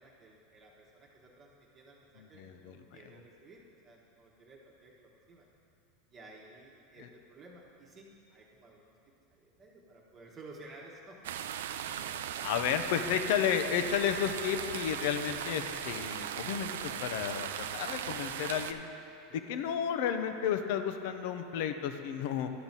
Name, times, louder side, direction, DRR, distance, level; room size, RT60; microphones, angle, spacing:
voice 1, 0.0-5.5 6.1-8.9 9.3-11.3 19.3-19.4, right 2 dB, 30° right, -3 dB, 1.1 m, -54 dB
voice 2, 2.2-2.8 7.0-7.1 12.4-18.9 19.5-22.5, left 8 dB, 65° left, 8 dB, 0.6 m, -32 dB
sound 1, 11.2-18.7, right 9 dB, 85° right, 0.4 m, -38 dB
11.5 x 4.0 x 7.3 m, 2.6 s
supercardioid pair, 130°, 0 cm